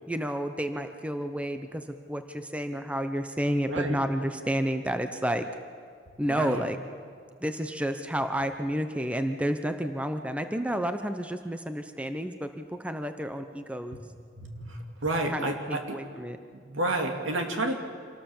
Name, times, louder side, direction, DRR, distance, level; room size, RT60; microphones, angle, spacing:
voice 1, 0.1-5.4 6.2-6.8 7.4-14.0 15.3-16.4, equal, 5° right, 8 dB, 0.9 m, -30 dB
voice 2, 3.7-4.0 6.2-6.6 14.4-16.0 16.5-17.8, right 1 dB, 90° right, 3 dB, 2.7 m, -30 dB
26.5 x 18.5 x 7.3 m, 2.1 s
head